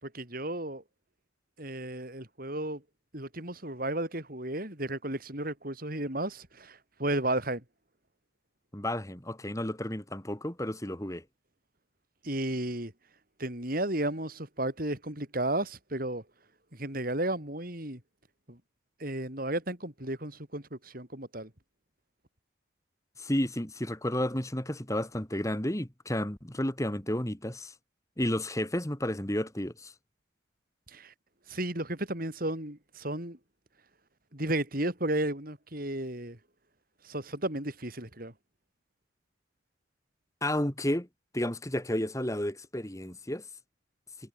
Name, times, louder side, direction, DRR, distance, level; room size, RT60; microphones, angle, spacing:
voice 1, 0.0-0.8 1.6-2.8 3.1-7.6 12.2-12.9 13.4-16.2 16.7-18.0 18.5-18.6 19.0-21.5 30.9-31.1 31.5-33.4 34.3-36.4 37.0-38.3, right 1 dB, 45° right, 4.6 m, -33 dB
voice 2, 8.7-11.2 23.2-27.7 28.2-29.9 40.4-41.1 41.3-43.4, left 1 dB, 15° left, 2.1 m, -32 dB
head